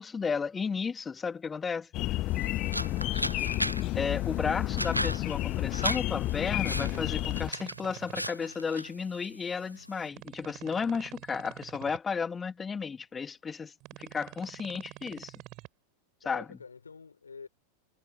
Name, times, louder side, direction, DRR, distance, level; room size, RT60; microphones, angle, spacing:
voice 1, 0.0-1.9 3.9-15.4 16.2-16.4, left 5 dB, 15° left, 1.7 m, -33 dB
sound 1, 1.9-7.5, left 17 dB, 35° left, 1.2 m, -31 dB
sound 2, 2.3-10.1, equal, 90° right, 1.1 m, -38 dB
sound 3, 6.4-8.3 10.1-12.0 13.8-15.7, right 22 dB, 40° right, 5.9 m, -47 dB
voice 2, 16.2-17.5, left 5 dB, 75° left, 4.2 m, -48 dB
figure-of-eight pair, 90°, 0 cm